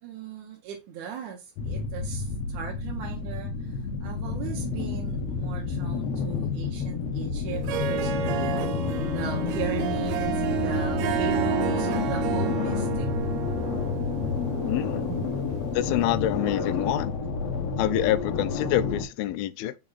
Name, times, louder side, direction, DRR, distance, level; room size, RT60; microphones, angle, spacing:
voice 1, 0.0-8.6 9.1-13.1 15.1-15.4, right 7 dB, 65° right, 2.2 m, -38 dB
sound 1, 1.6-19.1, left 5 dB, 65° left, 1.7 m, -29 dB
Harp, 7.5-16.1, right 10 dB, 90° right, 2.6 m, -31 dB
voice 2, 14.7-15.0 15.7-17.1 17.8-19.8, left 13 dB, 90° left, 2.5 m, -26 dB
5.6 x 5.0 x 4.0 m
omnidirectional pair, 4.3 m